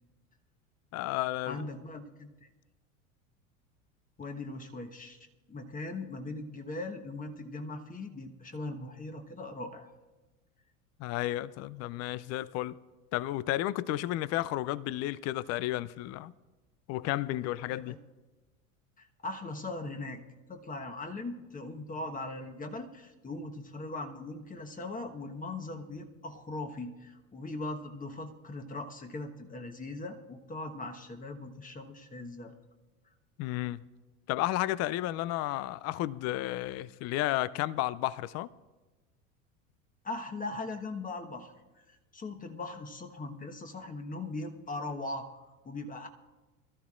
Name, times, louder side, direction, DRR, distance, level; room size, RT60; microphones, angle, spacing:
voice 1, 0.9-1.6 11.0-12.8 13.1-16.3 16.9-18.0 33.4-33.8 34.3-38.5, left 15 dB, 40° left, 0.4 m, -32 dB
voice 2, 1.5-2.5 4.2-9.9 17.7-17.9 19.0-20.2 20.5-32.5 40.0-46.1, left 2 dB, 20° left, 1.2 m, -40 dB
23.0 x 13.0 x 2.5 m
hypercardioid pair, 85°, 40 cm